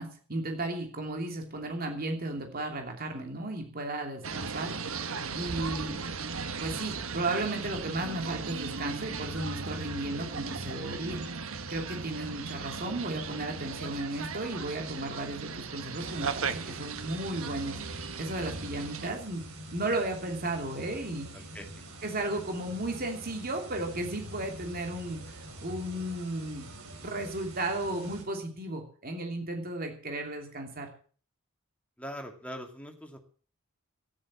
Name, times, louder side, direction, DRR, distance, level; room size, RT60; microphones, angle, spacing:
voice 1, 0.0-6.0 6.6-11.2 11.7-19.4 19.7-21.3 22.0-26.7 27.0-30.9, right 2 dB, 45° right, 3 dB, 2.9 m, -34 dB
sound 1, 4.2-19.1, right 4 dB, 70° right, 1.3 m, -37 dB
sound 2, 16.0-28.2, right 1 dB, 85° right, 4.3 m, -45 dB
voice 2, 21.3-21.7 32.0-33.2, equal, 5° left, 3 dB, 2.3 m, -42 dB
13.0 x 11.0 x 7.4 m, 0.43 s
head